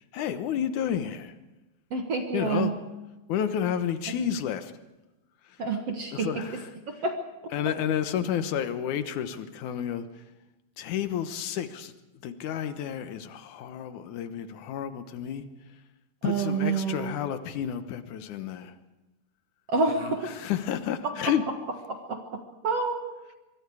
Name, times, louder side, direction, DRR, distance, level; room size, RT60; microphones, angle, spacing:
voice 1, 0.1-1.3 2.3-2.7 3.3-4.7 6.1-6.7 7.5-10.2 10.8-11.9 12.2-15.5 16.2-18.7 20.0-21.4, left 9 dB, 65° left, 10 dB, 2.3 m, -31 dB
voice 2, 1.9-2.7 5.6-6.3 7.0-7.1 16.2-17.1 19.7-20.3 22.1-22.2 22.6-23.0, right 4 dB, 50° right, 3 dB, 2.2 m, -27 dB
24.0 x 23.5 x 4.9 m, 1.1 s
omnidirectional pair, 4.3 m